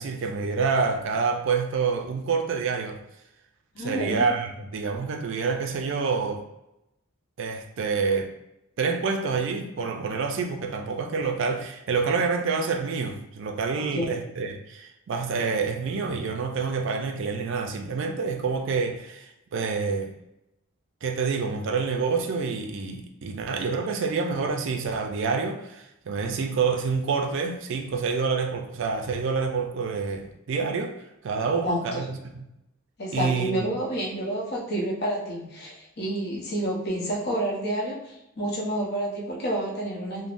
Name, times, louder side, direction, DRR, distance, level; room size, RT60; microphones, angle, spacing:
voice 1, 0.0-3.0 3.8-6.4 7.4-8.3 8.8-20.1 21.0-30.9 31.2-32.4 33.1-33.5, right 5 dB, 60° right, 4 dB, 0.3 m, -27 dB
voice 2, 3.7-4.3 13.7-14.1 31.6-32.0 33.0-40.3, right 1 dB, 50° left, -3 dB, 0.8 m, -29 dB
3.4 x 2.0 x 2.5 m, 0.88 s
head